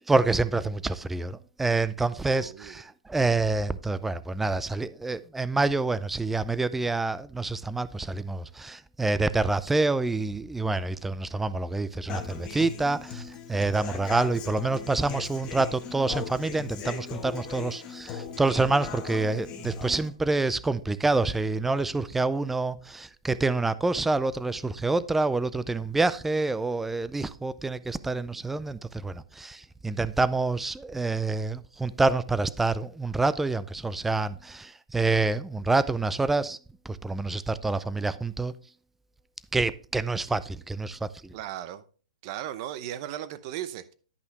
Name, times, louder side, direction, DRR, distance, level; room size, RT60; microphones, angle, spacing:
voice 1, 0.1-36.6 36.9-38.5 39.5-41.1, right 3 dB, 5° right, 0.3 m, -27 dB
voice 2, 2.3-2.8 41.3-41.8 42.2-43.9, right 12 dB, 40° right, 0.8 m, -36 dB
Human voice / Acoustic guitar, 12.1-20.1, left 7 dB, 25° left, 1.3 m, -38 dB
10.5 x 5.6 x 3.3 m
hypercardioid pair, 150°, 4 cm